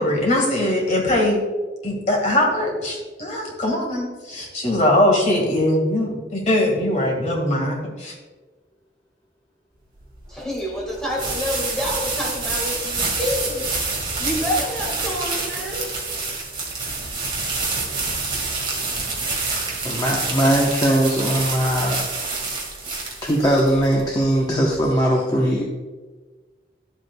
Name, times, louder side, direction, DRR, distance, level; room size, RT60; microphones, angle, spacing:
voice 1, 0.0-1.4 1.8-8.1, left 1 dB, 35° left, 0 dB, 1.7 m, -21 dB
sound 1, 10.0-24.9, right 3 dB, 25° right, 1.9 m, -27 dB
voice 2, 10.3-13.7 14.2-15.9, left 1 dB, 5° left, -3 dB, 1.7 m, -27 dB
voice 3, 19.8-22.1 23.2-25.7, equal, 20° left, -2 dB, 0.9 m, -20 dB
11.5 x 7.9 x 2.3 m, 1.3 s
head